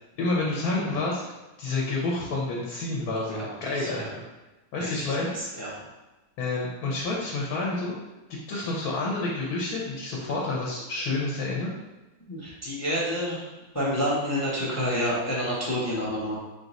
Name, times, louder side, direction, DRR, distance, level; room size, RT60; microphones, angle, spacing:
voice 1, 0.2-1.2 1.6-4.3 4.7-5.3 6.4-7.9 8.3-11.7, left 2 dB, 85° left, -3 dB, 1.3 m, -29 dB
voice 2, 3.2-4.1 4.8-5.1 5.6-5.7 12.3-13.5 13.7-16.4, equal, 20° left, -5 dB, 0.4 m, -29 dB
3.8 x 2.5 x 4.0 m, 1.1 s
omnidirectional pair, 1.6 m